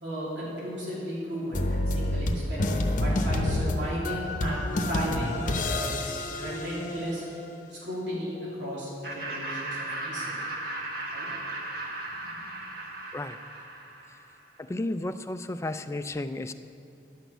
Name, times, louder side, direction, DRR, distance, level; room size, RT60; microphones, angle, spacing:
voice 1, 0.0-5.8 6.3-7.2 7.7-10.4 11.1-11.3 12.2-12.4, equal, 90° right, -7 dB, 2.9 m, -35 dB
sound 1, 1.5-7.3, left 1 dB, 45° left, 0.8 m, -28 dB
Laughter, 9.0-14.3, right 2 dB, 55° right, 1.4 m, -36 dB
voice 2, 14.6-16.5, left 2 dB, 15° left, 10 dB, 0.3 m, -33 dB
11.5 x 6.1 x 8.0 m, 2.6 s
head